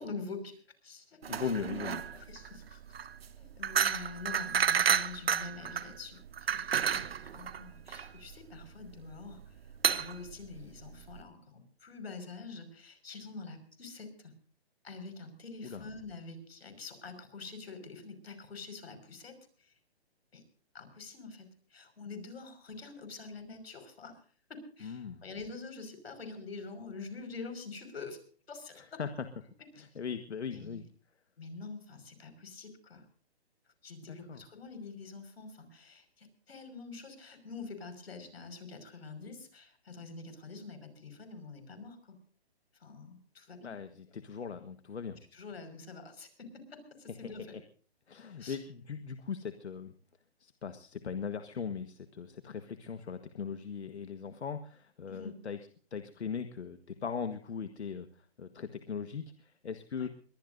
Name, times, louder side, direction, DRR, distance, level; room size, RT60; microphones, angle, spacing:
voice 1, 0.0-1.2 2.1-2.8 3.4-9.6 9.9-14.3 14.8-19.7 20.3-20.4 20.7-24.2 24.5-28.2 28.5-29.0 29.8-29.9 30.5-30.8 31.4-33.1 33.8-42.2 42.8-43.7 45.3-47.6 48.4-48.6 55.1-55.4 60.0-60.1, left 4 dB, 70° left, 8 dB, 5.7 m, -46 dB
sound 1, 1.2-11.2, right 8 dB, 65° right, 1.1 m, -31 dB
voice 2, 1.3-2.0 15.6-15.9 24.8-25.2 28.7-29.3 29.8-30.8 34.0-34.4 43.6-45.2 47.2-47.3 48.1-49.9 50.4-55.6 55.9-60.1, left 6 dB, 90° left, 9 dB, 1.5 m, -39 dB
22.5 x 19.0 x 2.7 m, 0.43 s
hypercardioid pair, 165°, 32 cm